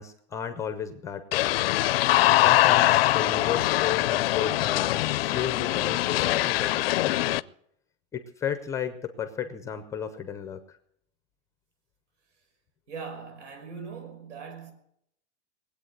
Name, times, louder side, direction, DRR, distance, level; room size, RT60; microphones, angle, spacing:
voice 1, 0.0-1.6 2.3-7.4 8.1-10.8, left 8 dB, 10° left, 0.5 m, -34 dB
sound 1, 1.3-7.4, left 17 dB, 55° left, 0.5 m, -23 dB
voice 2, 12.9-14.7, right 5 dB, 85° right, 5.6 m, -40 dB
20.5 x 8.4 x 7.9 m
supercardioid pair, 170°, 35 cm